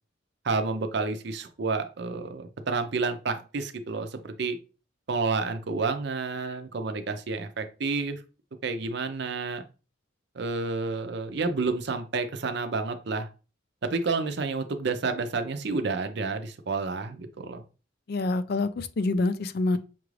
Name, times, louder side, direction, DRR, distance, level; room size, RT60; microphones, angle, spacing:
voice 1, 0.4-4.6 5.1-8.2 8.6-9.6 10.3-13.3 13.8-17.6, right 4 dB, 60° right, 0.5 m, -30 dB
voice 2, 18.1-19.8, left 2 dB, 50° left, 0.4 m, -26 dB
5.9 x 2.4 x 3.1 m
head